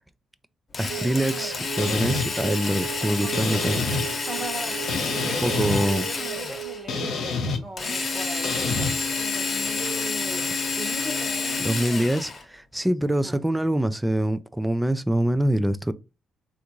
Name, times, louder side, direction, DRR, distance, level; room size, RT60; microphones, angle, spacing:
Drill, 0.7-6.8 7.8-12.4, left 4 dB, 35° left, 0.9 m, -29 dB
voice 1, 0.8-3.9 5.4-6.1 11.6-15.9, right 1 dB, 5° right, 0.3 m, -24 dB
sound 1, 0.9-7.1, right 12 dB, 60° right, 0.7 m, -37 dB
sound 2, 1.8-2.3 3.3-4.0 4.9-5.8 6.9-7.6 8.4-8.9, left 4 dB, 75° left, 0.8 m, -27 dB
voice 2, 2.6-3.6 4.3-11.7 13.2-13.5, right 1 dB, 25° right, 1.0 m, -39 dB
3.5 x 2.5 x 2.9 m
cardioid pair, 90°, 0 cm